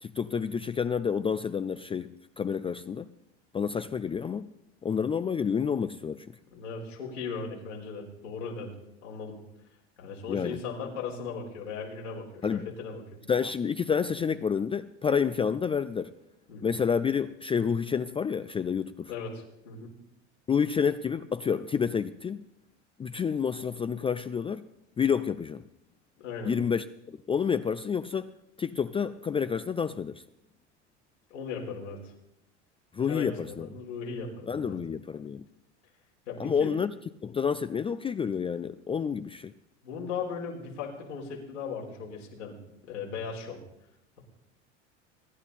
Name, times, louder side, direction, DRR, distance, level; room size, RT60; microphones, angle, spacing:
voice 1, 0.0-3.1 3.5-4.5 4.8-6.3 10.3-10.6 12.4-12.7 13.3-16.1 16.6-19.1 20.5-22.4 23.0-24.7 25.0-25.6 26.4-28.3 28.6-30.1 32.9-33.7 34.5-35.4 36.4-36.9 37.2-39.5, left 6 dB, 15° left, 0.4 m, -29 dB
voice 2, 6.5-8.8 9.0-9.4 10.0-13.0 16.5-16.7 19.1-19.9 26.2-26.5 31.3-32.0 33.1-34.8 36.3-36.7 39.8-42.6 42.9-43.6, left 5 dB, 90° left, 4.5 m, -37 dB
22.5 x 10.5 x 4.2 m
hypercardioid pair, 95°, 36 cm